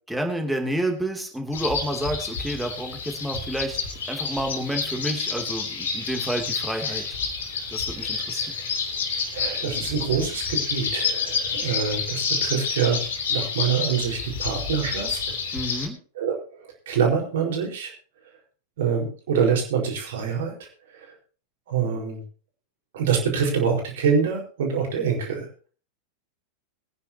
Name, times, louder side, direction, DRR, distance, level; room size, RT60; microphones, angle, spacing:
voice 1, 0.1-3.8 4.1-7.0 7.7-8.4 15.5-16.0, right 1 dB, 5° right, 4 dB, 2.9 m, -29 dB
sound 1, 1.5-15.9, left 5 dB, 65° left, 3.1 m, -29 dB
voice 2, 8.0-8.5 9.3-13.0 13.3-15.2 16.1-16.3 16.9-17.9 18.8-20.7 21.7-22.2 22.9-25.5, right 6 dB, 60° right, 1 dB, 4.6 m, -25 dB
22.0 x 10.0 x 2.9 m, 0.39 s
figure-of-eight pair, 90°, 0 cm